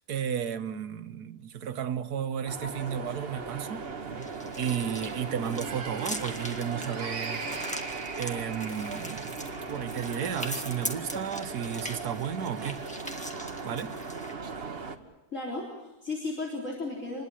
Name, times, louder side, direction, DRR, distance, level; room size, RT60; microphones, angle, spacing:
voice 1, 0.1-4.3 4.6-7.4 8.2-12.8 13.6-13.9, right 8 dB, 90° right, 1.6 m, -33 dB
sound 1, 2.5-15.0, right 4 dB, 40° right, 1.6 m, -37 dB
sound 2, 4.2-14.3, equal, 5° left, 1.7 m, -41 dB
voice 2, 15.3-17.2, left 2 dB, 50° left, 4.0 m, -35 dB
27.0 x 21.0 x 7.6 m
omnidirectional pair, 1.6 m